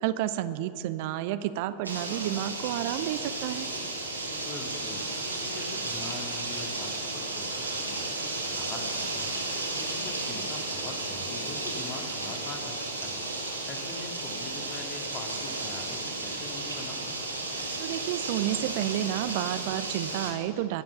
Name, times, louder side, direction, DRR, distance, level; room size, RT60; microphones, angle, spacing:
voice 1, 0.0-3.7 17.8-20.8, right 13 dB, 50° right, 13 dB, 0.6 m, -30 dB
sound 1, 1.8-20.3, right 2 dB, 85° right, 2.6 m, -33 dB
voice 2, 4.2-5.1 5.4-8.0 8.5-9.4 9.8-12.7 13.0-13.2 13.6-17.1, left 3 dB, 35° left, 3 dB, 2.3 m, -43 dB
23.0 x 7.7 x 7.0 m, 2.6 s
figure-of-eight pair, 90°, 0 cm